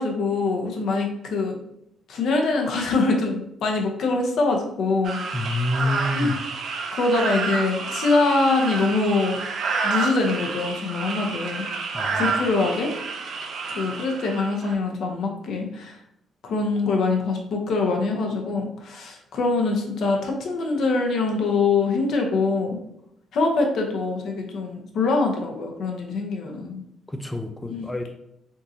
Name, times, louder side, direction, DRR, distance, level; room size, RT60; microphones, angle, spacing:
voice 1, 0.0-1.6 2.1-5.2 6.1-6.4 6.9-9.4 9.8-11.7 12.1-12.9 13.7-16.0 16.4-22.8 23.3-26.8 27.7-27.9, left 3 dB, 70° left, 1 dB, 0.7 m, -24 dB
sound 1, 5.0-14.7, right 4 dB, 60° right, 0.5 m, -29 dB
voice 2, 5.3-6.3 11.9-12.3 27.1-28.0, left 1 dB, 5° left, 5 dB, 0.3 m, -27 dB
3.6 x 2.7 x 2.6 m, 0.77 s
cardioid pair, 90°, 0 cm